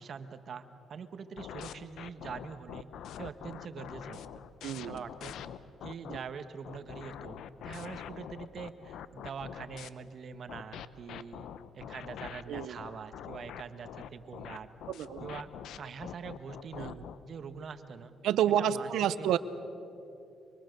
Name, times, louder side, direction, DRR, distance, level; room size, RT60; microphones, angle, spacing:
voice 1, 0.0-2.9 3.2-4.4 4.8-5.4 5.8-11.5 11.7-14.7 15.2-15.5 15.8-17.0 17.2-18.1 18.6-18.9 19.2-19.4, right 6 dB, 55° right, 10 dB, 1.4 m, -44 dB
sound 1, 1.4-6.2 6.6-9.9 10.5-17.2, left 9 dB, 80° left, 0.8 m, -44 dB
voice 2, 4.6-5.0 6.1-6.2 12.5-12.8 14.9-15.3 16.7-17.0 18.2-19.4, right 10 dB, 80° right, 14 dB, 0.8 m, -30 dB
25.0 x 24.5 x 6.8 m, 2.8 s
cardioid pair, 90°, 0 cm